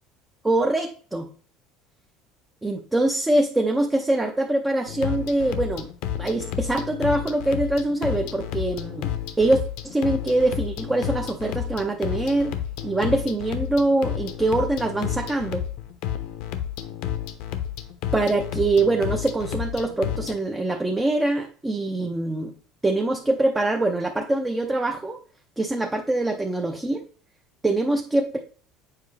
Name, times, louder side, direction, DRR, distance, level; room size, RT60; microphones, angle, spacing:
voice 1, 0.4-1.3 2.6-5.9 6.2-9.1 9.4-12.5 12.8-15.6 18.1-22.5 22.8-25.2 25.6-27.0 27.6-28.4, right 2 dB, 10° right, 2 dB, 0.5 m, -24 dB
sound 1, 4.9-20.4, left 10 dB, 70° left, 0.8 m, -31 dB
7.4 x 4.7 x 3.2 m, 0.43 s
cardioid pair, 150°, 0 cm